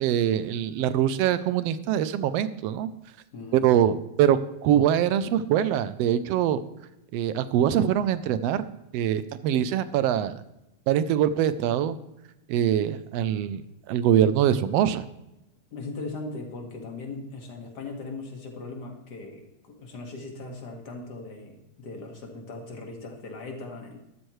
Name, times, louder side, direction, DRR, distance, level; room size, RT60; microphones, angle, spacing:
voice 1, 0.0-2.9 3.5-6.6 7.1-8.7 8.9-10.4 10.9-12.0 12.5-15.0, right 10 dB, 80° right, 13 dB, 1.5 m, -23 dB
voice 2, 3.3-3.7 15.7-24.0, left 3 dB, 40° left, 2 dB, 2.1 m, -39 dB
13.5 x 12.5 x 3.2 m, 0.90 s
omnidirectional pair, 3.3 m